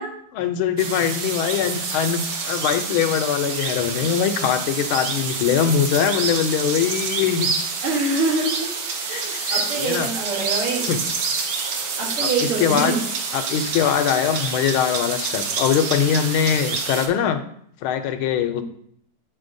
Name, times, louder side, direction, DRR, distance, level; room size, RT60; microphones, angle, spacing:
voice 1, 0.3-7.5 9.1-10.1 10.9-11.0 12.2-12.9 13.3-17.4 17.8-18.6, left 8 dB, 80° left, 8 dB, 1.4 m, -22 dB
sound 1, 0.8-17.1, right 4 dB, 65° right, 0.9 m, -27 dB
voice 2, 7.8-8.7 9.1-10.9 12.0-13.0 18.6-18.7, right 3 dB, 90° right, 0 dB, 2.2 m, -25 dB
8.8 x 4.2 x 2.6 m, 0.65 s
omnidirectional pair, 2.4 m